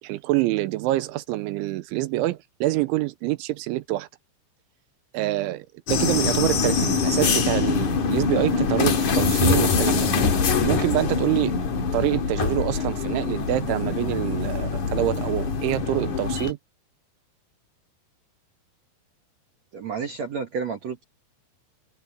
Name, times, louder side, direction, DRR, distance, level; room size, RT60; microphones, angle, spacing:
voice 1, 0.0-4.1 5.1-10.1 10.6-11.6 11.9-16.6, right 17 dB, 85° right, 3.3 m, -26 dB
sound 1, 5.9-16.5, left 5 dB, 45° left, 3.4 m, -24 dB
voice 2, 19.7-21.0, right 5 dB, 55° right, 1.9 m, -30 dB
omnidirectional pair, 5.3 m